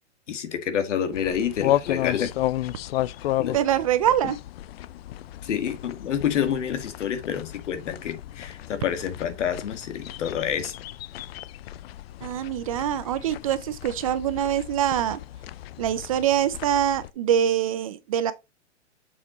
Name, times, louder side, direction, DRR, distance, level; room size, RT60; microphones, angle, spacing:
voice 1, 0.3-2.3 3.4-3.6 5.4-10.7, left 8 dB, 75° left, 1.9 m, -28 dB
sound 1, 1.1-17.1, left 14 dB, 55° left, 0.5 m, -33 dB
voice 2, 3.5-4.4 12.2-15.2 15.8-18.3, right 10 dB, 30° right, 0.4 m, -24 dB
7.3 x 4.3 x 4.0 m
hypercardioid pair, 150°, 36 cm